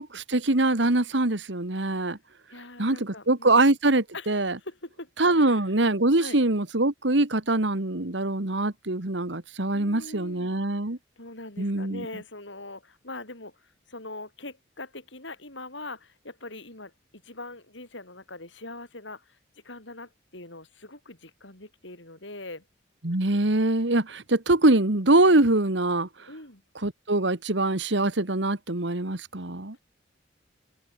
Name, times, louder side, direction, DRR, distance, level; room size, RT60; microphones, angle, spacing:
voice 1, 0.0-2.2 2.8-4.6 5.2-11.0 11.6-12.0 23.0-26.1 26.8-29.7, right 2 dB, 65° right, 1.8 m, -23 dB
voice 2, 2.5-3.7 4.1-5.1 5.4-5.7 6.2-6.4 9.7-10.6 11.2-19.4 19.6-22.6 26.3-26.6, left 2 dB, 70° left, 7.3 m, -42 dB
head